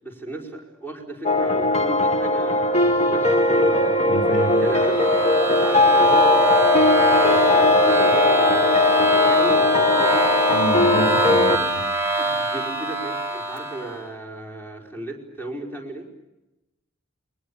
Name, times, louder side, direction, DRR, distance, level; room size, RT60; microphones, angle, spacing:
voice 1, 0.0-4.1 4.5-5.1 5.5-6.8 7.3-8.7 9.1-10.2 12.2-16.1, right 2 dB, 10° left, -1 dB, 5.0 m, -35 dB
sound 1, 1.2-11.6, left 2 dB, 30° left, 1.2 m, -19 dB
voice 2, 4.1-4.7 10.5-11.8, right 1 dB, 55° left, 1 dB, 3.9 m, -28 dB
sound 2, 4.4-14.0, right 2 dB, 10° right, 3.8 m, -24 dB
29.0 x 23.5 x 7.1 m, 0.98 s
head